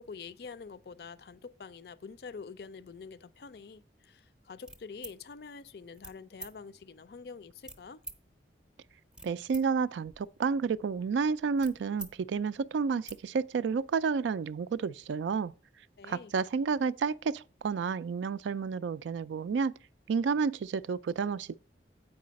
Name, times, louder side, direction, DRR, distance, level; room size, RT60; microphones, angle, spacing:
voice 1, 0.0-8.0 16.0-16.3, left 5 dB, 60° left, 0.4 m, -46 dB
sound 1, 4.6-5.2 5.9-6.1 6.4-6.5 7.6-8.2 8.9-9.6 10.0-12.1 12.5-12.6 12.9-13.2, right 1 dB, 5° right, 0.6 m, -47 dB
voice 2, 9.2-15.5 16.1-19.7 20.1-21.6, right 5 dB, 80° right, 0.3 m, -30 dB
8.3 x 4.8 x 5.1 m
head